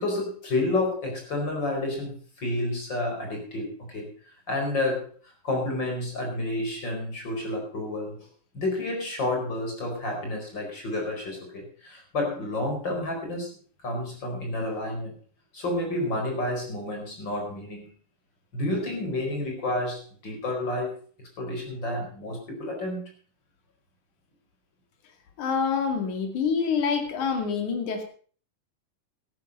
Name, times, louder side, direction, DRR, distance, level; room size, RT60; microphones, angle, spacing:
voice 1, 0.0-4.1 4.5-5.1 5.4-8.3 8.5-13.5 13.8-15.1 15.5-17.9 18.5-20.9 21.4-23.0, left 2 dB, 35° left, 2 dB, 5.1 m, -30 dB
voice 2, 25.4-28.0, left 6 dB, 65° left, 5 dB, 3.7 m, -26 dB
13.5 x 12.0 x 5.4 m, 0.42 s
omnidirectional pair, 3.7 m